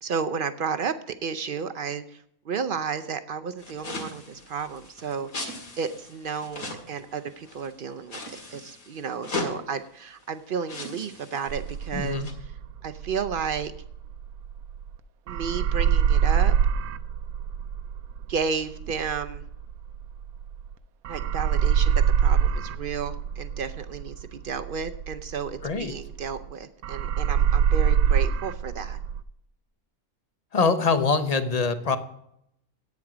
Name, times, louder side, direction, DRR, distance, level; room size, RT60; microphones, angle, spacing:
voice 1, 0.0-12.2 12.8-13.7 15.3-16.5 18.3-19.4 21.1-29.0, right 6 dB, 60° right, 10 dB, 0.5 m, -32 dB
sound 1, 3.6-7.7 8.1-9.6 10.3-10.4 10.6-12.3, left 2 dB, 75° left, 2.4 m, -37 dB
sound 2, 11.5-15.0 15.3-20.7 21.0-26.5 26.8-29.2, right 8 dB, 85° right, 1.1 m, -25 dB
voice 2, 11.9-12.3 25.6-25.9 30.5-32.0, left 4 dB, 35° left, 9 dB, 0.7 m, -24 dB
10.5 x 8.9 x 4.9 m, 0.75 s
omnidirectional pair, 1.5 m